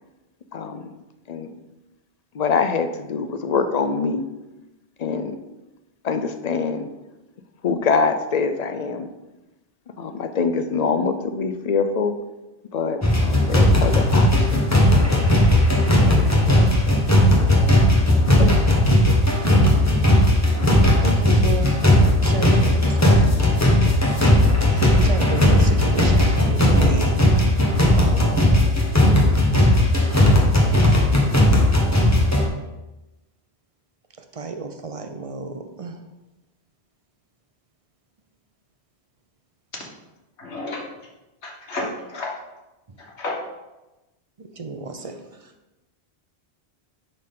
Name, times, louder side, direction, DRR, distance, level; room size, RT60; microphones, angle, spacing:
voice 1, 0.5-0.8 1.3-1.5 2.3-4.3 5.0-5.4 6.0-6.9 7.6-9.1 10.0-12.2 12.7-14.6 14.9-15.1 16.2-16.4 18.4-18.5, left 5 dB, 50° left, 9 dB, 0.5 m, -24 dB
sound 1, 13.0-32.5, left 1 dB, 15° left, 1.1 m, -17 dB
voice 2, 21.0-23.5 24.7-27.3 27.9-28.7 34.4-35.9 44.6-45.1, right 4 dB, 40° right, 5 dB, 0.6 m, -32 dB
voice 3, 40.4-40.9 41.4-42.3 43.2-43.4, left 2 dB, 85° left, -1 dB, 1.7 m, -30 dB
10.5 x 4.0 x 3.7 m, 1.0 s
omnidirectional pair, 1.1 m